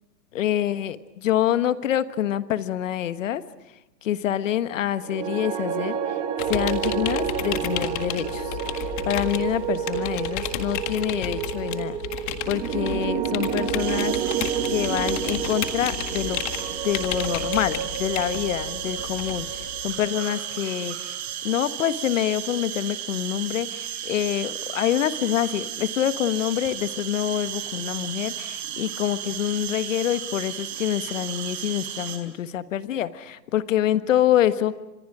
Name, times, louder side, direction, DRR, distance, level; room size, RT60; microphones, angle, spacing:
voice 1, 0.3-1.0 1.2-3.4 4.0-6.2 6.5-14.4 14.7-16.4 16.8-21.1 21.4-34.7, left 11 dB, 50° left, 12 dB, 1.5 m, -26 dB
sound 1, 5.0-21.3, right 8 dB, 10° right, 0.9 m, -30 dB
sound 2, 6.4-20.1, left 10 dB, 30° left, 1.8 m, -33 dB
sound 3, 13.8-32.2, right 11 dB, 40° right, 5.0 m, -34 dB
30.0 x 26.5 x 5.0 m, 1.0 s
hypercardioid pair, 150°, 49 cm